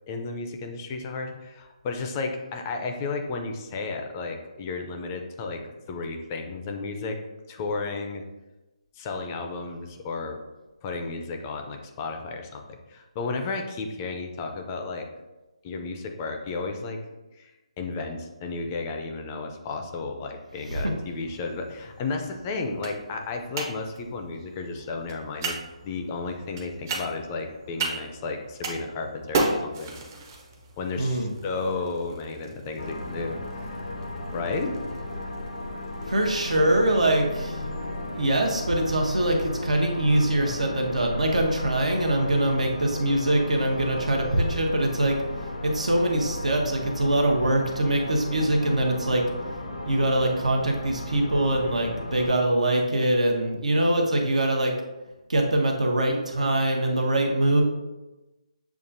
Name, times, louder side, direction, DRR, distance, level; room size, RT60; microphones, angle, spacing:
voice 1, 0.1-7.2 7.5-8.2 8.9-10.4 10.8-15.1 15.6-17.0 17.4-30.0 30.8-33.9 34.3-34.8, left 3 dB, 25° left, 4 dB, 0.4 m, -33 dB
sound 1, 20.9-38.8, right 3 dB, 30° right, 0.6 m, -37 dB
voice 2, 31.0-31.3 36.1-37.6 38.1-45.2 45.6-49.2 49.8-54.8 55.3-57.6, right 1 dB, 85° right, 1 dB, 0.9 m, -23 dB
sound 2, 32.8-52.3, left 1 dB, 85° left, 0.6 m, -34 dB
7.1 x 2.4 x 2.6 m, 1.1 s
hypercardioid pair, 155°, 4 cm